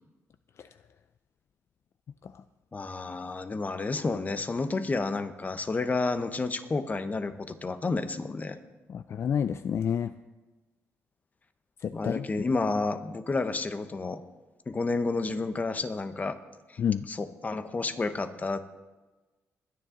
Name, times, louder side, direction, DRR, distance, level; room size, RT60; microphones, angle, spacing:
voice 1, 2.7-8.6 11.9-14.2 14.7-16.4 16.7-16.8 17.1-18.6, left 3 dB, 30° left, 10 dB, 1.0 m, -30 dB
voice 2, 8.9-10.1 11.8-12.2 16.8-17.0, left 8 dB, 55° left, 12 dB, 0.4 m, -28 dB
21.5 x 10.0 x 3.9 m, 1.2 s
cardioid pair, 90°, 5 cm